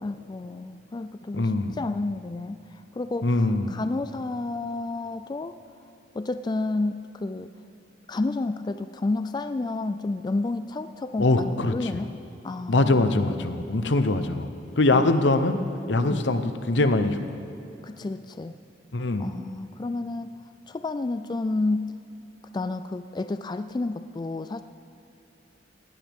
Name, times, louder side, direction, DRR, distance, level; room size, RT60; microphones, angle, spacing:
voice 1, 0.0-5.6 6.1-7.5 8.1-12.2 12.4-13.1 14.9-15.2 16.1-16.3 17.8-18.6 19.2-20.3 20.7-22.0 22.5-24.6, left 2 dB, 25° left, 10 dB, 0.3 m, -30 dB
voice 2, 1.3-1.8 3.2-3.8 11.2-11.7 12.7-14.5 14.8-15.6 15.9-16.4 16.7-17.2 18.9-19.3, left 2 dB, 75° left, 9 dB, 0.9 m, -22 dB
19.0 x 16.5 x 3.6 m, 2.9 s
head